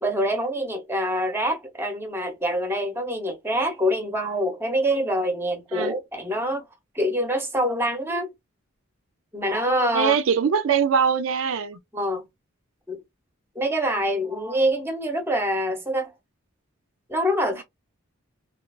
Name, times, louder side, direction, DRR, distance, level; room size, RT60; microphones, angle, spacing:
voice 1, 0.0-6.6 6.9-8.3 9.3-10.2 11.9-12.2 12.9-13.0 13.6-16.1 17.1-17.6, equal, 10° right, 0.7 m, -25 dB
voice 2, 9.9-11.8, right 6 dB, 70° right, 0.4 m, -22 dB
2.8 x 2.2 x 2.2 m
head